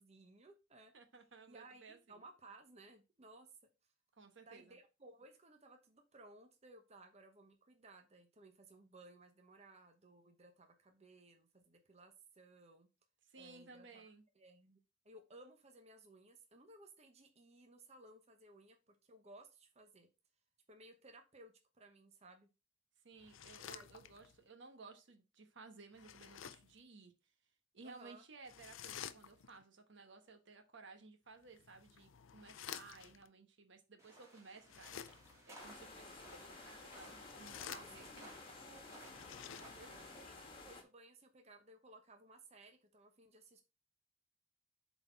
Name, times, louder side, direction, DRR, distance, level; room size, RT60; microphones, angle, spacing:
voice 1, 0.0-0.9 1.5-3.5 4.4-12.9 13.3-14.1 14.3-14.8 15.0-20.1 20.7-22.5 23.7-24.1 27.8-28.2 37.7-38.9 39.8-40.4 40.6-43.6, right 2 dB, 35° right, 5 dB, 1.0 m, -60 dB
voice 2, 0.9-2.2 4.2-4.8 13.2-14.2 23.0-27.1 27.7-35.0 35.5-38.4 39.5-40.0, right 4 dB, 65° right, 6 dB, 1.2 m, -58 dB
sound 1, 23.2-24.4 25.9-26.8 28.5-29.6 31.4-33.3 34.6-35.5 37.1-38.3 39.0-40.1, left 9 dB, 75° left, 0.5 m, -52 dB
sound 2, 34.0-40.2, right 1 dB, 15° right, 3.1 m, -60 dB
sound 3, 35.6-40.8, left 3 dB, 25° left, 1.6 m, -54 dB
7.8 x 4.1 x 4.5 m, 0.28 s
head